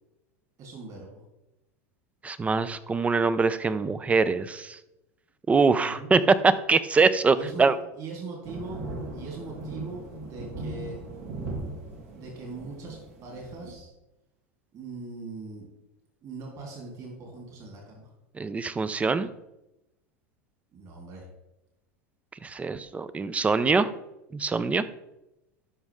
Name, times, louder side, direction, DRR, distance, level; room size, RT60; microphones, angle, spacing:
voice 1, 0.6-1.2 5.8-6.1 7.3-7.7 8.0-8.8 9.1-11.0 12.1-13.9 14.7-15.7 16.2-18.1 20.7-21.2, right 3 dB, 45° right, -1 dB, 3.2 m, -40 dB
voice 2, 2.2-4.8 5.5-7.7 18.4-19.3 22.4-23.9 24.3-24.8, right 4 dB, 15° right, 15 dB, 0.5 m, -23 dB
suburban rain, 8.4-13.7, right 2 dB, 75° right, 3.1 m, -38 dB
12.5 x 5.3 x 3.6 m, 0.90 s
hypercardioid pair, 105°, 8 cm